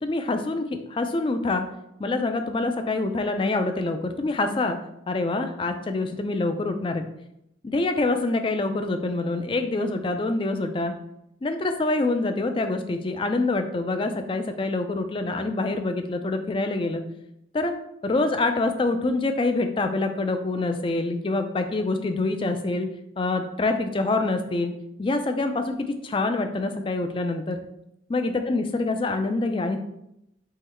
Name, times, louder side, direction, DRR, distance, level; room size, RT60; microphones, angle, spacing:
voice 1, 0.0-1.6 2.0-4.8 5.1-7.1 7.6-10.9 11.4-17.0 17.5-17.7 18.0-22.9 23.2-24.7 25.0-27.6 28.1-29.8, left 2 dB, 25° left, 7 dB, 0.3 m, -26 dB
3.8 x 3.0 x 4.2 m, 0.82 s
head